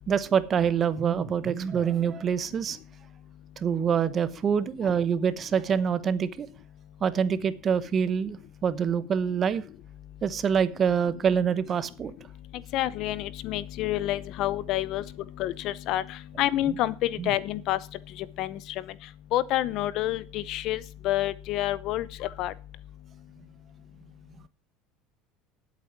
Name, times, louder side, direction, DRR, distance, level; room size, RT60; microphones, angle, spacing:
voice 1, 0.1-2.8 3.6-6.5 7.0-9.6 10.2-12.1 17.2-17.3, right 7 dB, 35° right, 14 dB, 1.0 m, -26 dB
voice 2, 12.7-15.0 15.4-17.8 18.2-18.8 19.3-22.5, left 14 dB, 60° left, 19 dB, 0.8 m, -28 dB
11.0 x 8.3 x 5.9 m, 0.36 s
supercardioid pair, 120°, 0 cm